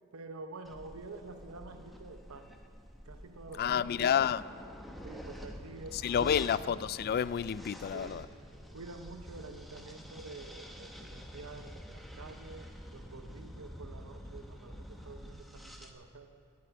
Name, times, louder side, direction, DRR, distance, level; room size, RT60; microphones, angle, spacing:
voice 1, 0.1-2.6 3.0-4.4 5.0-6.5 7.9-8.4 8.7-16.3, right 3 dB, 85° right, 6 dB, 0.8 m, -48 dB
sound 1, 0.6-15.9, equal, ahead, 1.0 m, -48 dB
voice 2, 3.6-4.4 6.0-8.2, left 8 dB, 45° left, 18 dB, 0.3 m, -29 dB
11.5 x 8.6 x 9.2 m, 2.6 s
head